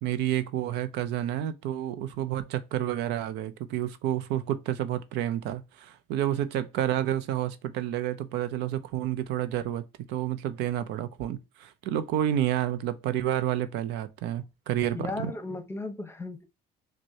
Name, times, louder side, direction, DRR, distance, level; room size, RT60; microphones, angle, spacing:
voice 1, 0.0-9.8 10.1-15.3, right 11 dB, 85° right, 0.5 m, -30 dB
voice 2, 15.0-16.4, left 3 dB, 15° left, 0.7 m, -35 dB
6.0 x 2.2 x 2.7 m
cardioid pair, 110°, 17 cm